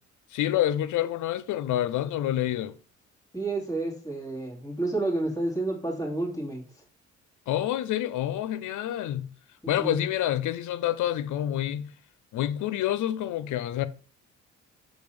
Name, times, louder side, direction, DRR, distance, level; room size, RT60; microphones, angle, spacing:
voice 1, 0.3-2.7 7.5-9.3 9.7-11.9 12.3-13.9, left 12 dB, 80° left, 0.6 m, -28 dB
voice 2, 3.3-6.6 9.6-10.0, right 2 dB, 10° left, 2.8 m, -30 dB
6.3 x 5.1 x 3.4 m
cardioid pair, 90°, 30 cm